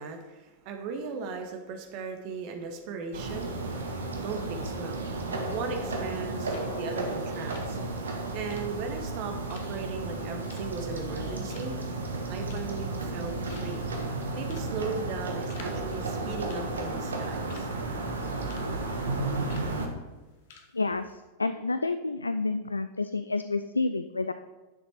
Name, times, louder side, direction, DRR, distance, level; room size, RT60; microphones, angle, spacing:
voice 1, 0.0-3.5 4.2-5.1 5.5-7.8 8.3-11.8 12.3-13.8 14.3-17.7, right 4 dB, 45° right, 4 dB, 1.6 m, -37 dB
sound 1, 3.1-19.9, right 2 dB, 70° right, 1.4 m, -33 dB
sound 2, 6.5-6.7 7.0-11.2 11.5-11.9 12.3-12.9 13.2-13.3 13.5-13.9 14.4-14.7 15.0-15.7 16.0-16.2 16.5-17.7 18.1-18.7 18.9-19.1 19.5-19.7 20.1-20.2 20.5-20.7 21.0-21.1, left 6 dB, 55° left, 1.3 m, -51 dB
voice 2, 20.7-24.3, left 3 dB, 80° left, 10 dB, 0.4 m, -29 dB
10.5 x 6.8 x 4.4 m, 1.2 s
figure-of-eight pair, 90°, 0 cm